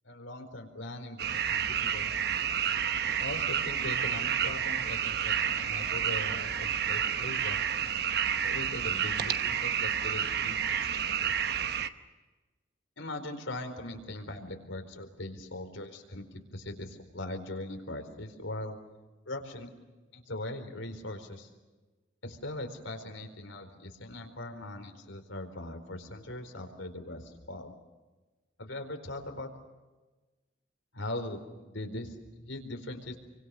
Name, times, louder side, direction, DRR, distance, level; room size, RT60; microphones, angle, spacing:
voice 1, 0.0-2.1 3.0-7.6 8.4-11.3 13.0-18.8 19.3-19.7 20.1-21.5 22.2-27.7 28.6-29.5 30.9-33.2, left 1 dB, 80° left, 5 dB, 4.4 m, -40 dB
sound 1, 1.2-11.9, right 8 dB, 55° right, 1.0 m, -30 dB
29.0 x 25.0 x 6.6 m, 1.2 s
head